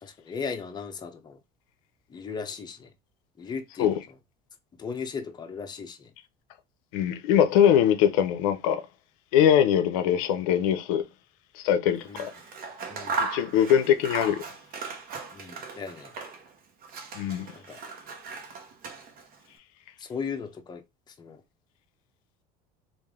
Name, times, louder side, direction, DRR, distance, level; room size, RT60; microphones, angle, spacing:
voice 1, 0.0-1.4 2.1-2.9 3.4-3.9 4.8-6.1 12.0-12.3 12.9-13.2 15.3-16.1 17.5-17.8 20.0-21.4, left 5 dB, 25° left, 0.7 m, -37 dB
voice 2, 6.9-8.8 9.3-11.0 11.6-12.3 13.2-14.4 17.1-17.5, left 9 dB, 90° left, 0.5 m, -22 dB
Scissors, 12.0-16.5 16.8-19.4, right 4 dB, 55° right, 0.9 m, -37 dB
3.1 x 2.5 x 3.5 m
supercardioid pair, 115°, 18 cm